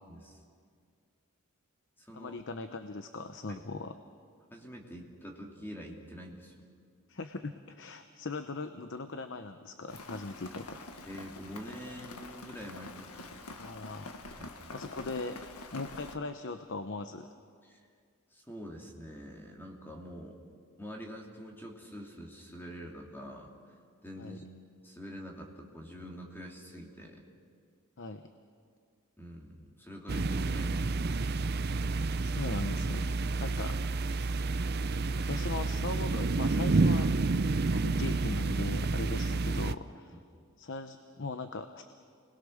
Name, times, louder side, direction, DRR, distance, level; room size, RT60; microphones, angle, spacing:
voice 1, 0.1-0.4 2.0-2.4 3.5-3.7 4.5-6.5 11.0-13.5 14.4-14.5 17.6-17.8 18.3-20.4 20.8-23.5 24.0-24.4 24.8-27.2 29.2-30.9 33.4-33.5 40.1-40.2, equal, 10° left, 0 dB, 2.7 m, -46 dB
voice 2, 2.1-4.0 7.1-10.8 13.6-14.1 14.7-15.4 15.7-17.3 24.2-24.4 28.0-28.2 32.2-34.3 35.1-37.1 37.7-40.2 40.6-41.8, left 3 dB, 55° left, 8 dB, 0.9 m, -39 dB
Rain, 9.9-16.2, left 2 dB, 85° left, 1.6 m, -46 dB
sound 1, 30.1-39.7, right 3 dB, 45° right, 0.6 m, -29 dB
29.0 x 21.0 x 6.5 m, 2.1 s
head